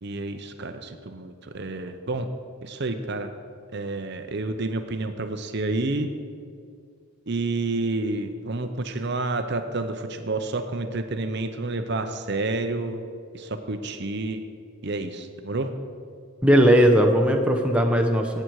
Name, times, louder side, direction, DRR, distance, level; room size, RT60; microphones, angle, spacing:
voice 1, 0.0-2.3 2.6-3.3 3.7-6.1 7.3-13.0 13.3-14.4 14.8-15.7, right 2 dB, 50° right, 8 dB, 0.7 m, -29 dB
voice 2, 16.4-18.4, equal, 5° right, 2 dB, 0.8 m, -18 dB
17.5 x 7.9 x 4.7 m, 2.3 s
head